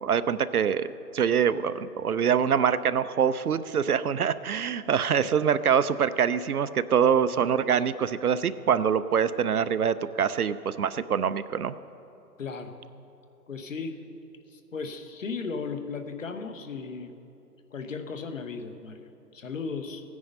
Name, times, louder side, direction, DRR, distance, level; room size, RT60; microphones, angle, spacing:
voice 1, 0.0-0.9 1.1-11.7, right 7 dB, 65° right, 14 dB, 0.6 m, -24 dB
voice 2, 12.4-12.7 13.5-14.0 14.5-17.1 17.7-20.0, left 4 dB, 50° left, 7 dB, 1.1 m, -36 dB
15.5 x 9.6 x 5.4 m, 2.9 s
hypercardioid pair, 165°, 49 cm